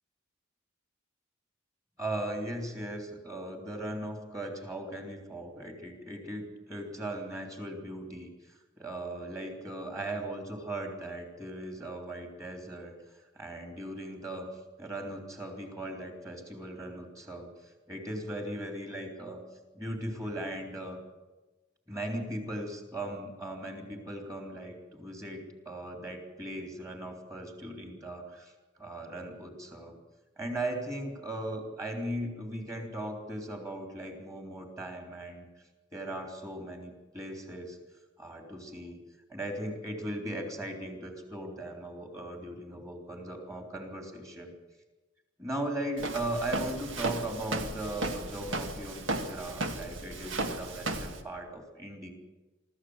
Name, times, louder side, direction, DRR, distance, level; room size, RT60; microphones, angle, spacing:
voice 1, 2.0-12.9 13.3-14.5 14.8-17.5 17.9-19.4 19.7-21.0 21.9-28.5 28.8-30.0 30.4-35.5 35.9-37.8 38.2-39.0 39.3-44.5 45.4-52.1, right 1 dB, 15° right, 2 dB, 3.5 m, -38 dB
Walk footsteps, 46.0-51.2, right 2 dB, 75° right, 1.8 m, -35 dB
24.0 x 14.0 x 8.0 m, 1.2 s
head